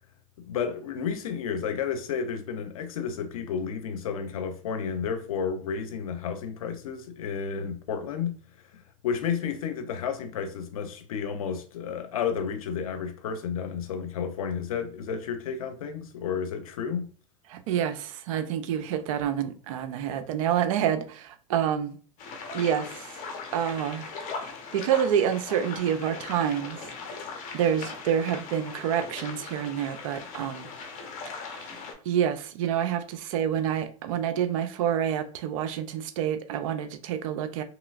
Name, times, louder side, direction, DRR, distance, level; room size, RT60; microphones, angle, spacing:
voice 1, 0.4-8.4 9.0-17.1, left 7 dB, 85° left, 0.6 m, -31 dB
voice 2, 17.5-22.0 22.5-23.2 23.5-24.1 24.7-26.9 27.5-30.7 31.4-31.8 32.0-37.6, right 9 dB, 70° right, 0.5 m, -28 dB
sound 1, 22.2-31.9, left 4 dB, 45° left, 0.8 m, -39 dB
3.0 x 3.0 x 2.4 m
hypercardioid pair, 105°, 18 cm